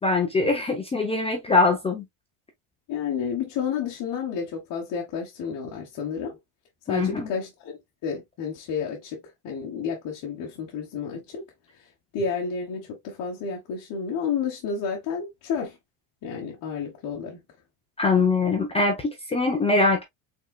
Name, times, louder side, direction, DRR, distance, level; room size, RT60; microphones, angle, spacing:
voice 1, 0.0-2.0 6.9-7.3 18.0-20.0, left 3 dB, 15° left, 0.5 m, -22 dB
voice 2, 2.9-6.4 6.9-9.2 9.4-11.4 12.1-15.8 16.2-17.4, left 6 dB, 45° left, 1.3 m, -31 dB
5.3 x 3.9 x 2.2 m
cardioid pair, 175°, 47 cm